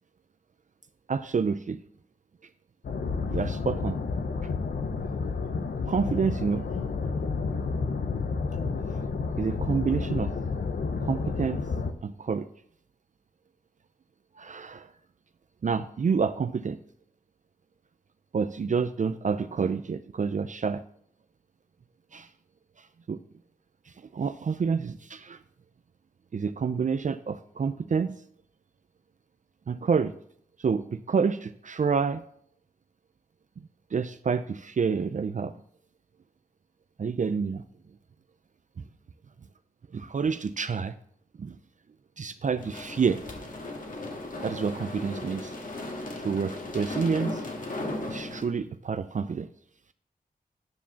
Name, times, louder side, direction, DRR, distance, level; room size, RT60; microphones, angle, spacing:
voice 1, 1.1-1.8 3.3-4.0 5.9-6.6 9.4-10.3 11.0-11.6 12.0-12.5 14.4-14.9 15.6-16.8 18.3-20.8 22.1-22.3 23.1-23.2 24.1-25.4 26.3-28.1 29.7-30.1 30.6-32.2 33.9-35.5 37.0-37.6 39.9-40.9 41.4-41.6 42.2-43.2 44.4-45.5 46.2-47.4 48.1-49.5, right 5 dB, 50° right, 11 dB, 0.5 m, -28 dB
sound 1, 2.8-11.9, left 4 dB, 80° left, 0.8 m, -30 dB
sound 2, 42.6-48.4, left 2 dB, 55° left, 2.0 m, -36 dB
9.5 x 5.0 x 6.9 m, 0.65 s
wide cardioid pair, 75°, 16 cm